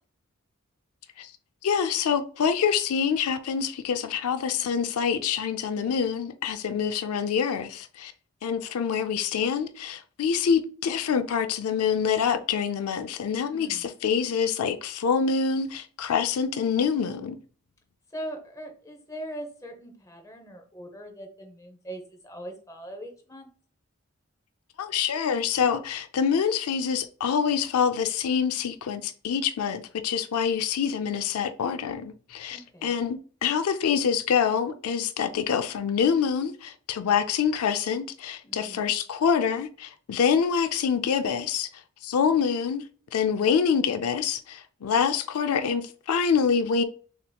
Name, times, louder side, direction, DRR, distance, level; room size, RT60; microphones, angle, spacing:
voice 1, 1.6-8.1 8.4-17.4 24.8-41.7 42.0-42.8 43.1-46.8, left 7 dB, 85° left, 0.4 m, -26 dB
voice 2, 13.5-13.9 18.1-23.5 32.5-33.0 38.4-38.9, right 1 dB, 15° left, 0.7 m, -41 dB
6.5 x 2.9 x 2.2 m
head